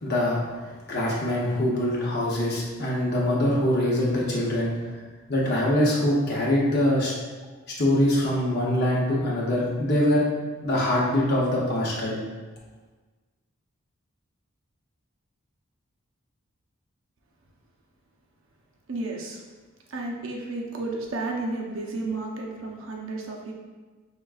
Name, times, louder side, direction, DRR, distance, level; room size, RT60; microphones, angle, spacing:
voice 1, 0.0-4.7 5.3-7.1 7.7-10.3 10.6-12.2, left 1 dB, 50° left, -5 dB, 0.7 m, -24 dB
voice 2, 18.9-19.4 19.9-23.5, right 2 dB, 70° right, -1 dB, 0.7 m, -32 dB
5.5 x 3.5 x 2.4 m, 1.3 s
head